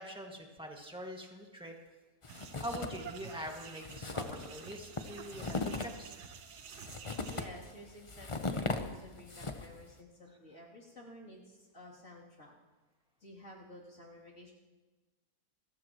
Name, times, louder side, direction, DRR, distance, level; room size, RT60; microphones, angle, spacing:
voice 1, 0.0-1.7 2.6-6.1, equal, 5° right, 0 dB, 1.9 m, -44 dB
sound 1, 2.2-3.1 3.4-3.5 3.8-9.8, left 3 dB, 25° left, 0.7 m, -38 dB
sound 2, 2.3-7.5, right 8 dB, 90° right, 1.5 m, -50 dB
voice 2, 7.1-12.5 13.2-14.5, left 1 dB, 50° left, -4 dB, 3.4 m, -52 dB
29.0 x 14.0 x 3.1 m, 1.2 s
omnidirectional pair, 1.7 m